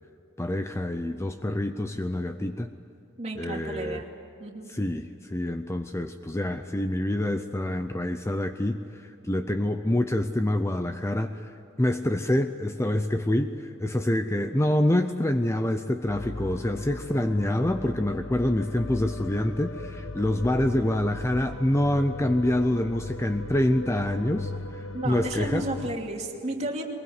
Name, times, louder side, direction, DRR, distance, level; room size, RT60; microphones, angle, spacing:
voice 1, 0.4-2.7 3.4-4.0 4.7-25.6, left 1 dB, 15° left, 8 dB, 0.6 m, -26 dB
voice 2, 3.2-4.1 4.4-4.7 24.9-26.8, right 1 dB, 30° right, 1 dB, 2.7 m, -32 dB
sound 1, 16.1-26.0, left 2 dB, 70° left, 1.1 m, -38 dB
22.5 x 21.0 x 9.6 m, 2.8 s
head